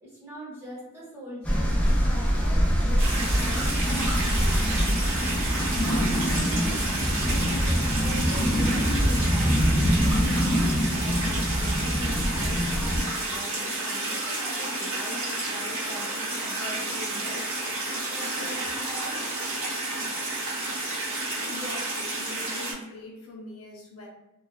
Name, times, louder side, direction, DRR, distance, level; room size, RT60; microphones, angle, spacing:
voice 1, 0.0-5.3 5.8-17.8 18.1-19.2, equal, 10° right, -7 dB, 1.0 m, -42 dB
sound 1, 1.4-13.0, equal, 5° left, 0.4 m, -24 dB
sound 2, 3.0-22.7, right 2 dB, 65° right, 1.0 m, -31 dB
voice 2, 21.5-24.1, left 2 dB, 75° left, -2 dB, 0.6 m, -42 dB
2.3 x 2.2 x 2.4 m, 0.98 s
head